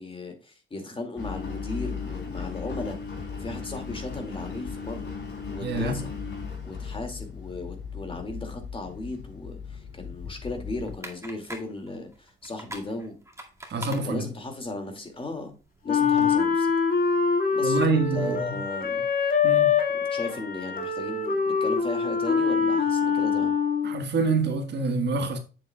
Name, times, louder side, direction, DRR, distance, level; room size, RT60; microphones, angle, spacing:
voice 1, 0.0-3.0 3.4-5.1 5.5-6.1 6.6-13.1 13.7-13.8 14.0-15.5 15.8-16.7 17.5-19.1 19.9-23.5, left 2 dB, 25° left, 2.3 m, -36 dB
Engine, 1.2-10.9, left 5 dB, 65° left, 3.3 m, -37 dB
voice 2, 5.6-6.0 13.7-14.3 16.0-16.3 17.6-18.6 19.4-19.8 23.8-25.4, right 3 dB, 60° right, 1.6 m, -27 dB
sound 1, 10.8-16.3, right 1 dB, 15° right, 2.1 m, -45 dB
Wind instrument woodwind instrument, 15.9-24.0, left 6 dB, 45° left, 1.8 m, -24 dB
7.6 x 7.4 x 2.3 m
cardioid pair, 90°, 20 cm